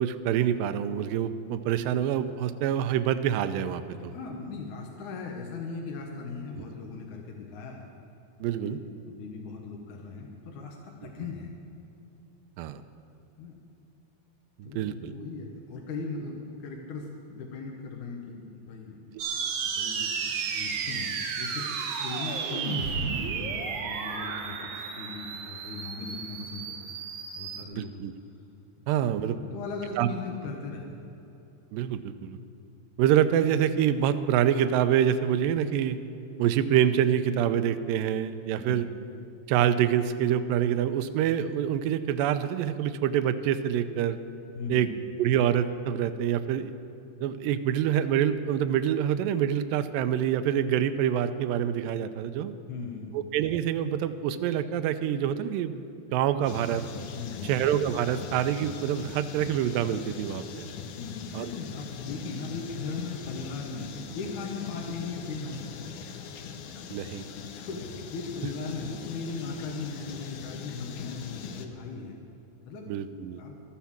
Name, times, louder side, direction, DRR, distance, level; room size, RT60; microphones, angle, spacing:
voice 1, 0.0-4.1 8.4-8.8 12.6-12.8 14.6-15.1 27.6-28.1 28.9-29.4 30.0-30.1 31.7-32.4 33.0-36.0 36.4-38.9 39.5-44.2 44.7-44.9 45.2-46.7 47.2-52.5 53.1-55.7 56.1-56.8 57.4-60.7 61.3-61.5 66.9-67.2 72.9-73.4, right 10 dB, 80° right, 10 dB, 2.2 m, -26 dB
voice 2, 4.0-7.9 8.5-11.5 13.4-13.6 14.6-19.1 19.7-27.0 27.4-28.0 28.8-30.9 38.5-38.8 44.5-44.9 52.7-53.2 57.1-57.6 61.0-66.0 67.5-72.2 72.7-72.9 73.4-73.5, left 4 dB, 65° left, 0 dB, 2.3 m, -38 dB
sound 1, 19.2-27.7, right 6 dB, 65° right, 2.1 m, -33 dB
sound 2, 56.4-71.7, left 6 dB, 85° left, 2.7 m, -42 dB
13.0 x 10.0 x 7.2 m, 2.8 s
omnidirectional pair, 4.2 m